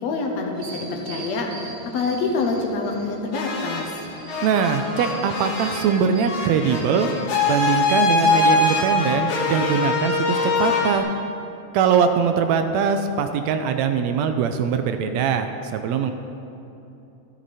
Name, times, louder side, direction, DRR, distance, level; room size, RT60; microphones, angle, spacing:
voice 1, 0.0-3.9, left 3 dB, 70° left, 1 dB, 2.3 m, -26 dB
sound 1, 0.5-3.3 3.7-7.6 8.2-8.5, right 3 dB, 45° right, 1.8 m, -41 dB
sound 2, 3.3-4.0 4.3-11.0, left 3 dB, 85° left, 3.3 m, -23 dB
voice 2, 4.4-7.1 7.5-11.1 11.7-16.1, right 6 dB, 80° right, 8 dB, 1.8 m, -22 dB
13.5 x 12.5 x 4.2 m, 2.9 s
omnidirectional pair, 3.3 m